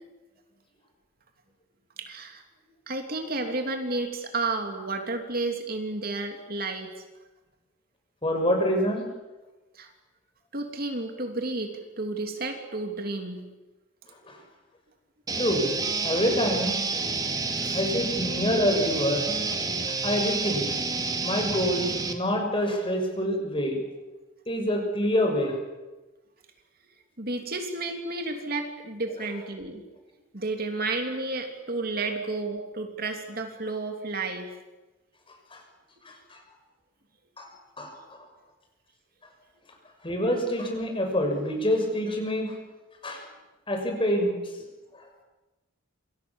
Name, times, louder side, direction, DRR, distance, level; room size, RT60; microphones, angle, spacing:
voice 1, 2.0-2.4 2.9-6.9 9.7-9.9 10.5-13.5 17.5-17.8 27.2-29.8 30.3-34.5, right 3 dB, 45° right, 4 dB, 3.2 m, -32 dB
voice 2, 8.2-9.0 14.3-14.4 15.4-15.7 16.0-16.8 17.7-19.6 19.9-20.7 21.2-23.8 24.5-25.6 35.5-35.6 36.1-36.4 37.4-37.5 37.8-37.9 40.0-42.5 43.0-43.2 43.7-44.3 44.9-45.0, equal, 25° left, 3 dB, 6.5 m, -26 dB
sound 1, 15.3-22.1, right 3 dB, 20° right, 2.3 m, -29 dB
28.0 x 27.0 x 7.4 m, 1.1 s
head